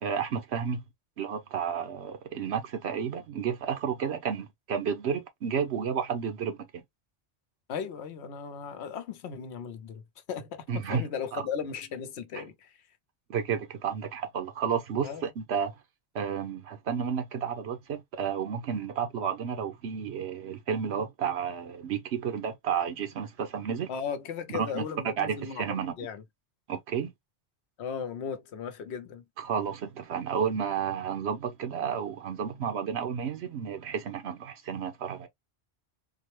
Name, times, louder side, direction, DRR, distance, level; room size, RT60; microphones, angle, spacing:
voice 1, 0.0-0.8 1.2-6.8 10.7-11.1 11.3-11.4 12.3-12.4 13.3-15.8 16.1-23.9 24.5-25.9 26.7-27.1 29.4-35.3, right 7 dB, 80° right, 1.1 m, -31 dB
voice 2, 7.7-10.0 10.3-12.7 15.0-15.2 23.9-26.2 27.8-29.2, left 7 dB, 80° left, 1.0 m, -36 dB
3.8 x 2.1 x 3.1 m
omnidirectional pair, 1.1 m